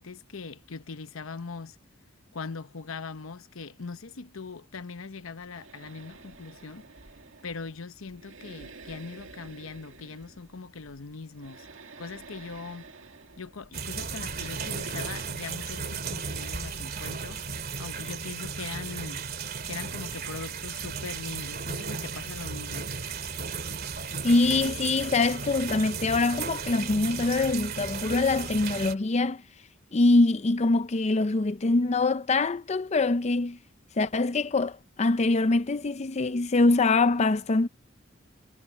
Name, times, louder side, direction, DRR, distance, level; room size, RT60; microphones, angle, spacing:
voice 1, 0.0-1.8 2.3-6.9 7.4-11.7 12.0-12.9 13.4-17.4 17.8-19.3 19.7-22.9, left 4 dB, 90° left, 0.9 m, -40 dB
sound 1, 5.4-15.3, right 4 dB, 70° right, 1.9 m, -49 dB
sound 2, 13.7-28.9, right 5 dB, 50° right, 2.4 m, -35 dB
voice 2, 24.2-29.4 29.9-33.6 34.0-37.7, left 3 dB, 35° left, 0.5 m, -24 dB
head